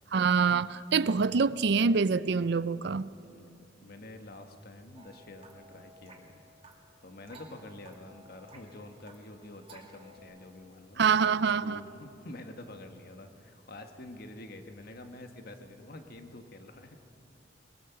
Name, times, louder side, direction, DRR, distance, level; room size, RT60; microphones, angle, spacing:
voice 1, 0.1-3.1 11.0-11.8, right 5 dB, 65° right, 17 dB, 0.5 m, -25 dB
voice 2, 3.2-6.4 6.7-11.0 11.6-17.0, left 1 dB, 55° left, 6 dB, 1.4 m, -48 dB
sound 1, 5.0-10.2, right 1 dB, 30° right, 2.7 m, -55 dB
21.5 x 21.5 x 5.9 m, 2.7 s
head